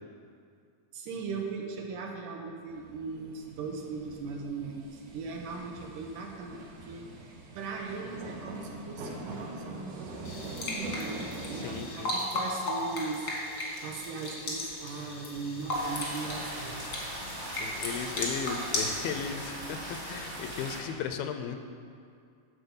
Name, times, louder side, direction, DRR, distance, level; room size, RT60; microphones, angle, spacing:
voice 1, 0.9-16.8, right 4 dB, 75° right, 1 dB, 2.2 m, -39 dB
sound 1, 2.7-11.8, right 2 dB, 90° right, 2.8 m, -43 dB
sound 2, 10.2-18.9, left 1 dB, 55° left, 1.1 m, -35 dB
voice 2, 11.5-12.1 17.5-21.6, left 7 dB, 85° left, 7 dB, 2.4 m, -36 dB
sound 3, 15.7-20.8, right 1 dB, 40° right, 1.1 m, -39 dB
10.0 x 4.3 x 7.0 m, 2.3 s
omnidirectional pair, 4.1 m